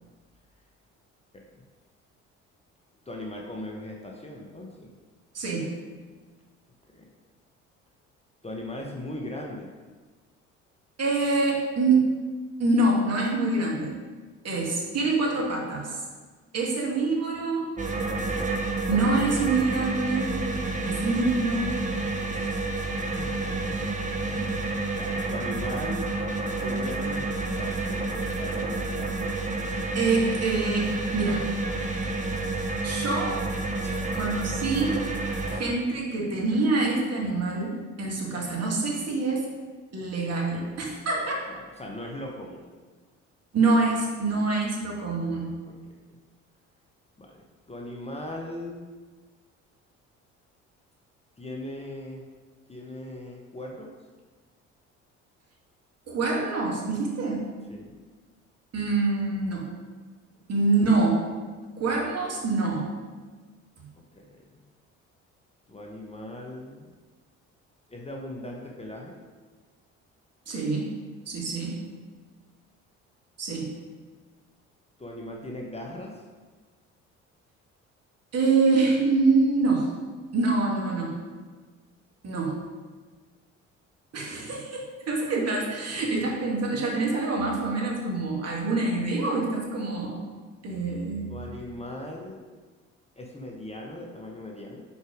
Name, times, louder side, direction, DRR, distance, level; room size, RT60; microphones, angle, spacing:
voice 1, 3.1-4.9 6.9-7.1 8.4-9.7 22.2-23.6 24.1-24.7 24.9-26.0 26.6-29.3 33.8-34.3 35.5-35.6 36.2-36.3 40.5-40.9 41.5-42.7 45.7-45.8 46.1-46.2 47.2-48.9 51.4-52.2 52.7-53.9 57.7-58.0 64.1-64.6 65.7-66.9 67.9-69.2 75.0-76.2 91.3-92.4 93.2-94.8, left 1 dB, 15° left, -1 dB, 1.1 m, -39 dB
voice 2, 5.3-5.7 11.0-12.0 12.6-13.9 14.4-16.0 16.5-17.7 18.9-20.3 20.8-21.7 22.3-22.6 30.0-31.5 32.8-33.4 34.1-35.0 35.6-39.5 39.9-41.3 43.5-45.6 56.1-57.5 58.7-59.6 60.5-61.2 61.8-62.8 63.8-63.9 70.5-71.0 71.3-71.8 73.4-73.7 78.3-79.9 80.3-81.2 82.2-82.6 84.1-90.2 90.6-91.3, right 3 dB, 40° right, -2 dB, 2.0 m, -25 dB
sound 1, 17.8-35.6, right 2 dB, 20° right, 1.0 m, -29 dB
5.4 x 4.6 x 5.0 m, 1.4 s
hypercardioid pair, 50°, 37 cm